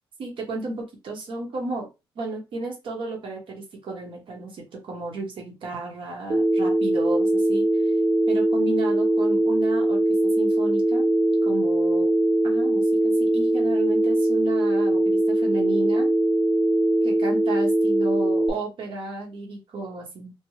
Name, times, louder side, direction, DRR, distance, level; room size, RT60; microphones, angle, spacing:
voice 1, 0.2-1.9 2.1-7.9 8.3-11.1 11.4-12.1 12.4-16.1 17.0-20.3, right 2 dB, 60° right, 1 dB, 1.1 m, -33 dB
Telephone, 6.3-18.5, right 1 dB, 35° right, 0.6 m, -21 dB
3.4 x 2.2 x 3.0 m, 0.25 s
cardioid pair, 140°, 10 cm